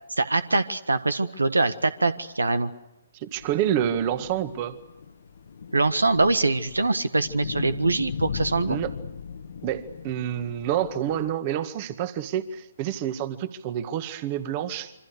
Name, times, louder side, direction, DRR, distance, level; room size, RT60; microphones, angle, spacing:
voice 1, 0.2-2.7 5.7-8.8, right 3 dB, 80° right, 13 dB, 1.4 m, -23 dB
voice 2, 3.2-4.8 8.7-8.9 9.6-14.9, right 10 dB, 30° right, 12 dB, 1.8 m, -28 dB
sound 1, 3.4-11.3, left 7 dB, 55° left, 1.5 m, -38 dB
27.5 x 25.5 x 6.6 m, 0.94 s
figure-of-eight pair, 130°, 0 cm